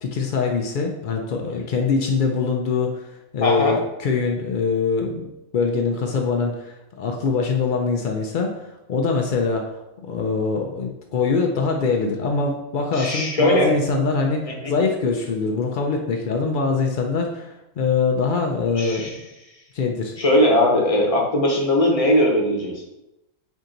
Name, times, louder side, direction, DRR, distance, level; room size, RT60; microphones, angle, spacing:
voice 1, 0.0-5.3 5.5-19.2 19.7-20.1, left 4 dB, 90° left, 2 dB, 0.4 m, -23 dB
voice 2, 3.4-3.7 12.9-13.7 14.6-14.7 18.8-19.1 20.2-22.8, left 1 dB, 30° left, -1 dB, 0.7 m, -19 dB
4.6 x 2.7 x 3.8 m, 0.92 s
omnidirectional pair, 1.4 m